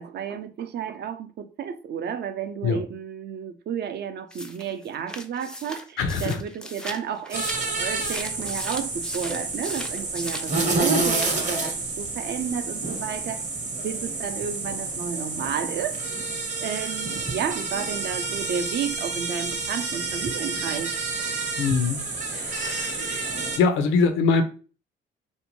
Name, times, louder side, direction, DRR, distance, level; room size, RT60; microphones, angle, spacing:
voice 1, 0.0-13.4 13.8-16.0 16.6-20.9, right 7 dB, 55° right, 0.4 m, -32 dB
sound 1, 4.3-10.5 10.8-11.5, left 1 dB, 5° left, 0.4 m, -37 dB
voice 2, 6.0-6.4 21.6-24.4, left 5 dB, 85° left, 0.5 m, -24 dB
sound 2, 7.3-23.6, right 3 dB, 40° right, 0.8 m, -29 dB
2.6 x 2.1 x 2.9 m
cardioid pair, 90°, 20 cm